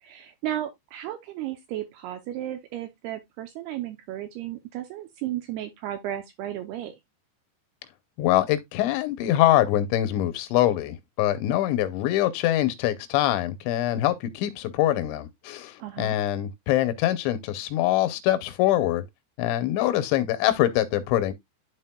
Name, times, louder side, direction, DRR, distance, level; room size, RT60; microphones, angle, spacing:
voice 1, 0.0-7.0 15.8-16.2, right 12 dB, 80° right, 2.4 m, -34 dB
voice 2, 8.2-19.0 19.4-21.3, left 13 dB, 85° left, 3.0 m, -24 dB
12.0 x 4.1 x 2.2 m
omnidirectional pair, 5.2 m